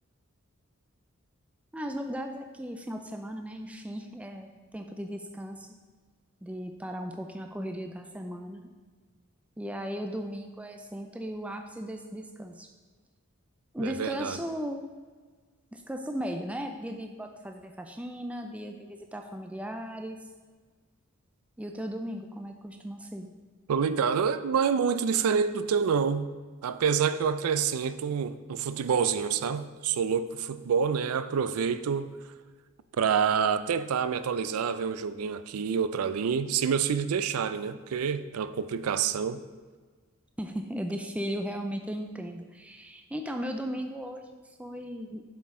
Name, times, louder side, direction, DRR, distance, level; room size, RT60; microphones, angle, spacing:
voice 1, 1.7-5.8 6.4-8.7 9.6-12.7 13.7-14.9 15.7-20.3 21.6-23.3 40.4-45.2, equal, 5° right, 0.3 m, -36 dB
voice 2, 13.8-14.4 23.7-26.3 26.6-32.1 33.0-39.4, right 6 dB, 85° right, 0.4 m, -27 dB
7.8 x 6.0 x 3.7 m
head